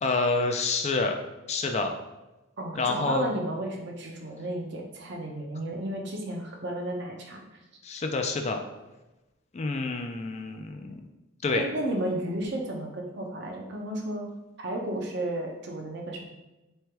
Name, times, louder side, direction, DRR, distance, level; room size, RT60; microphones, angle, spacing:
voice 1, 0.0-1.2 1.5-1.9 2.8-3.3 7.8-8.6 9.5-11.0 11.4-11.7, left 3 dB, 35° left, 5 dB, 0.4 m, -28 dB
voice 2, 2.6-7.4 11.5-14.3 14.6-16.2, right 1 dB, 55° right, 1 dB, 0.8 m, -33 dB
3.4 x 3.3 x 4.5 m, 1.0 s
head